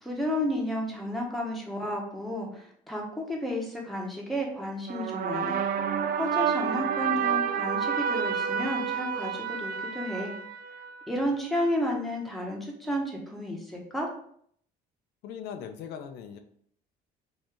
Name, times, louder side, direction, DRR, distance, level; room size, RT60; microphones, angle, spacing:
voice 1, 0.0-5.6 6.1-10.3 11.1-14.1, left 1 dB, ahead, -1 dB, 1.3 m, -32 dB
sound 1, 4.9-11.3, right 7 dB, 60° right, 0.4 m, -29 dB
voice 2, 15.2-16.4, left 8 dB, 85° left, 6 dB, 0.6 m, -39 dB
5.3 x 2.8 x 3.5 m, 0.63 s
cardioid pair, 110°, 17 cm